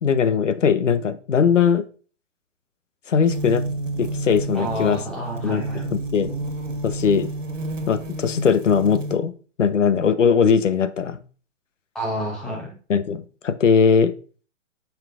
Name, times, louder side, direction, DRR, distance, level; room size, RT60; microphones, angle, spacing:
voice 1, 0.0-1.8 3.1-3.6 4.0-5.0 5.4-6.3 6.8-7.3 7.9-9.3 9.6-11.2 12.9-14.1, left 6 dB, 75° left, 13 dB, 0.9 m, -20 dB
sound 1, 3.3-9.2, right 2 dB, 80° right, 1.6 m, -30 dB
voice 2, 4.5-5.9 11.9-12.7, right 1 dB, ahead, -3 dB, 0.4 m, -29 dB
8.8 x 5.8 x 2.5 m, 0.39 s
figure-of-eight pair, 135°, 37 cm